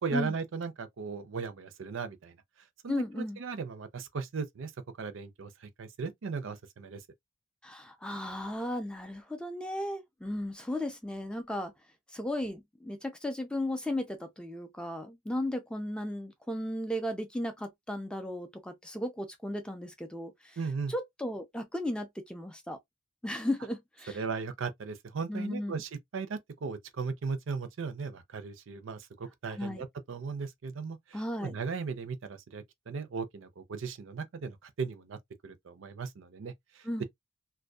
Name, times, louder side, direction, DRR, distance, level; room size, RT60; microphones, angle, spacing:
voice 1, 0.0-2.4 2.8-4.7 5.0-7.0 20.6-20.9 24.1-35.2 35.4-37.0, right 5 dB, 65° right, 0.4 m, -37 dB
voice 2, 2.9-3.4 7.6-11.7 12.1-20.6 20.9-22.8 23.2-24.2 25.3-25.8 29.5-29.8 31.1-31.6 36.8-37.0, left 1 dB, 5° left, 0.3 m, -35 dB
2.6 x 2.1 x 2.2 m
head